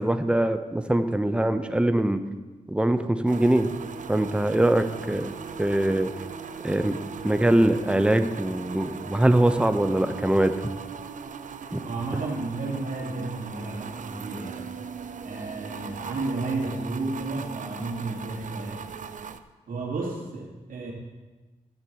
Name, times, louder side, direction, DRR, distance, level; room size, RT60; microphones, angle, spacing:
voice 1, 0.0-2.2 2.7-3.7 4.1-5.3 5.6-6.1 6.6-6.9 7.2-10.5 11.7-11.8, right 1 dB, 5° right, 8 dB, 0.9 m, -22 dB
sound 1, 3.3-19.4, right 6 dB, 65° right, 0.6 m, -39 dB
voice 2, 11.8-14.8 15.2-18.9 19.7-20.9, right 3 dB, 80° right, -2 dB, 2.8 m, -32 dB
14.0 x 8.4 x 4.8 m, 1.2 s
cardioid pair, 60°, 14 cm